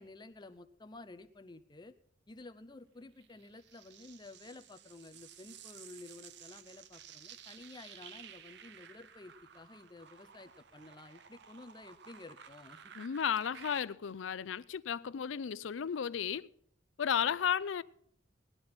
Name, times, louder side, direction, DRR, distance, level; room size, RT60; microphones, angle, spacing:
voice 1, 0.0-2.0 2.3-12.9, left 2 dB, 25° left, 0.6 m, -52 dB
sound 1, 3.2-13.8, right 8 dB, 60° right, 0.6 m, -54 dB
voice 2, 13.0-16.5 17.0-17.8, left 8 dB, 75° left, 0.4 m, -34 dB
18.5 x 10.5 x 4.3 m
head